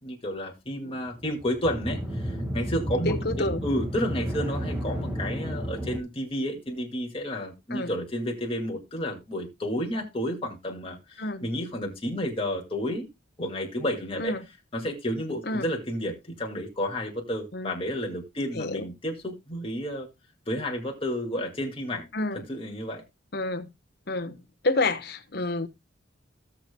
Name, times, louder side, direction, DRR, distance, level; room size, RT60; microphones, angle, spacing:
voice 1, 0.0-13.1 13.4-14.4 14.7-20.1 20.5-22.1 22.5-23.0, equal, 30° left, 2.2 m, -31 dB
sound 1, 1.0-6.0, equal, 10° right, 1.7 m, -32 dB
voice 2, 3.0-3.6 7.7-7.9 11.2-11.5 14.2-14.5 15.5-15.7 17.5-17.7 18.5-18.9 22.1-22.4 23.3-23.7 24.1-24.4 24.6-25.7, left 2 dB, 50° left, 1.1 m, -29 dB
16.5 x 6.9 x 2.2 m
head